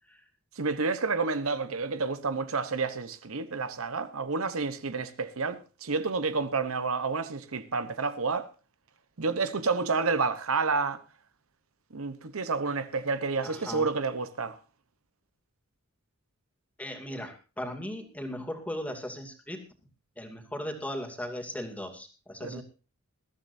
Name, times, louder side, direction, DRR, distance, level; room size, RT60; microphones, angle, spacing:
voice 1, 0.6-8.5 9.2-11.0 11.9-14.6 22.4-22.6, right 4 dB, 70° right, 1.0 m, -29 dB
voice 2, 13.4-13.9 16.8-19.6 20.2-22.6, left 1 dB, 5° left, 2.6 m, -37 dB
21.5 x 13.5 x 2.7 m
head